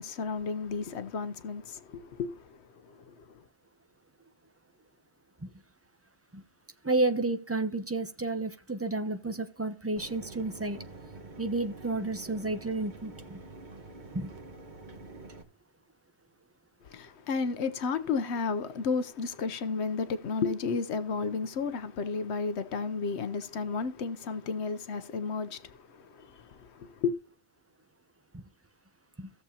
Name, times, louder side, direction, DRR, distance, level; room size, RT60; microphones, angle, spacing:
voice 1, 0.0-3.4 16.8-27.1, left 5 dB, 85° left, 1.0 m, -33 dB
voice 2, 6.8-10.8 11.4-13.4 14.1-14.3 28.3-28.4 29.2-29.3, right 2 dB, 15° right, 0.7 m, -31 dB
Mechanisms, 10.0-15.4, right 3 dB, 45° right, 1.3 m, -47 dB
16.5 x 6.9 x 2.8 m
omnidirectional pair, 1.1 m